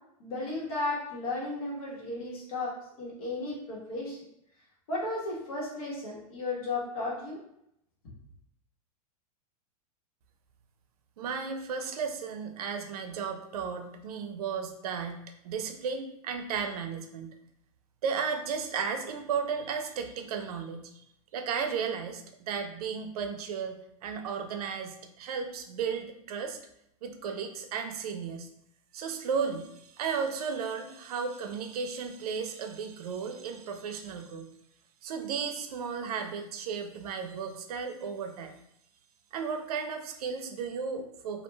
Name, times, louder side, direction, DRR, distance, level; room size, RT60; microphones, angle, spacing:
voice 1, 0.2-2.7 3.0-4.2 4.9-7.4, left 2 dB, 70° left, -4 dB, 1.2 m, -34 dB
voice 2, 11.2-17.3 18.0-21.0 21.3-23.8 24.0-26.6 27.0-28.5 28.9-34.5 35.0-38.5 39.3-41.4, right 6 dB, 90° right, 6 dB, 0.5 m, -34 dB
2.4 x 2.2 x 3.1 m, 0.76 s
supercardioid pair, 165°, 19 cm